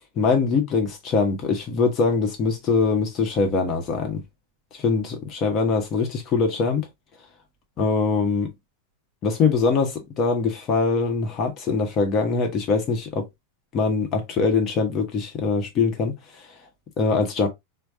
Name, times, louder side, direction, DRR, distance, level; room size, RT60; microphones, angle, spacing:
voice 1, 0.2-4.2 4.7-6.9 7.8-8.5 9.2-13.3 13.7-16.1 17.0-17.5, left 4 dB, 30° left, 1.1 m, -23 dB
4.6 x 2.2 x 2.6 m
figure-of-eight pair, 90°, 0 cm